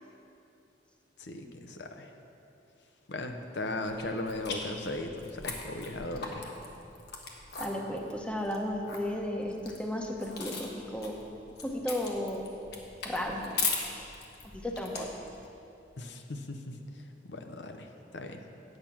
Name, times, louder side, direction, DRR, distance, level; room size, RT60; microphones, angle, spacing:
voice 1, 1.2-2.1 3.1-6.4 16.0-16.6 17.3-17.9 18.1-18.4, left 2 dB, 85° left, 5 dB, 0.8 m, -37 dB
sound 1, 3.8-15.5, left 4 dB, 65° left, 1.3 m, -39 dB
voice 2, 7.6-11.2 11.6-12.5 13.0-13.5 14.6-15.1, left 1 dB, 5° left, 1 dB, 0.8 m, -34 dB
8.9 x 8.8 x 5.9 m, 2.8 s
head